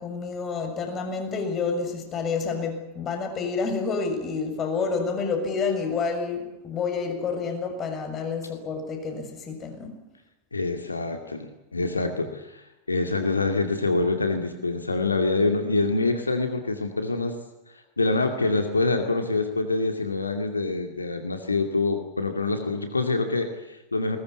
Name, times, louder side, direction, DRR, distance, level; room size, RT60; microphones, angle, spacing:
voice 1, 0.0-10.0, left 5 dB, 25° left, 5 dB, 6.9 m, -29 dB
voice 2, 10.5-17.4 18.0-24.2, left 3 dB, 80° left, 6 dB, 2.4 m, -26 dB
21.0 x 20.5 x 9.6 m, 0.96 s
figure-of-eight pair, 90°, 0 cm